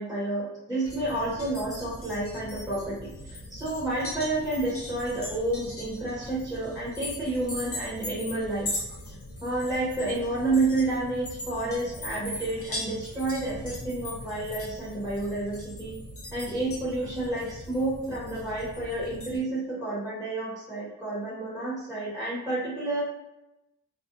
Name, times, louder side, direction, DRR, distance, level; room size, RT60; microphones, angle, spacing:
voice 1, 0.0-9.1 9.4-15.9 16.3-23.0, right 2 dB, ahead, -10 dB, 0.9 m, -30 dB
sound 1, 0.8-19.4, left 1 dB, 45° left, 0.6 m, -40 dB
2.5 x 2.2 x 2.5 m, 0.94 s
wide cardioid pair, 145°, 32 cm